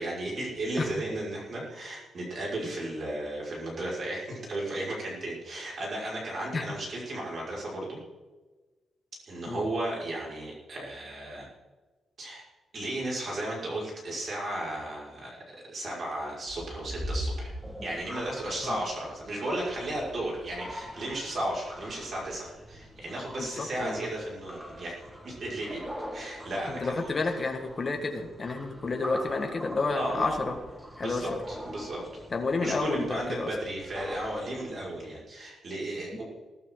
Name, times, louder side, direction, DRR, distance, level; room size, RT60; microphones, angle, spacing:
voice 1, 0.0-8.0 9.3-11.5 12.2-12.4 12.7-17.5 17.8-24.9 25.2-25.8 26.1-27.1 29.9-30.6 31.0-32.0 32.5-36.2, right 1 dB, 40° right, -4 dB, 5.7 m, -34 dB
sound 1, 16.4-35.2, equal, 10° right, 1.7 m, -42 dB
voice 2, 23.4-24.0 26.7-30.5 31.0-31.4 32.3-33.5 36.1-36.2, left 3 dB, 25° left, 3 dB, 1.8 m, -30 dB
21.5 x 12.5 x 4.0 m, 1.2 s
wide cardioid pair, 170°, 0 cm